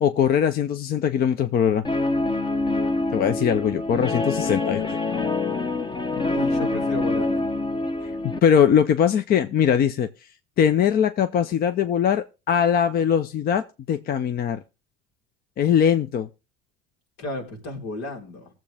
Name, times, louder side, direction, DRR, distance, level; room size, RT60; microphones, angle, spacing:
voice 1, 0.0-1.9 3.1-5.0 8.2-10.1 10.6-14.6 15.6-16.3, left 8 dB, 45° left, 0.7 m, -21 dB
Guitar, 1.8-8.4, left 2 dB, 25° left, 0.9 m, -25 dB
voice 2, 6.3-7.5 17.2-18.5, left 2 dB, 85° left, 4.2 m, -33 dB
19.5 x 7.6 x 3.5 m
cardioid pair, 120°, 21 cm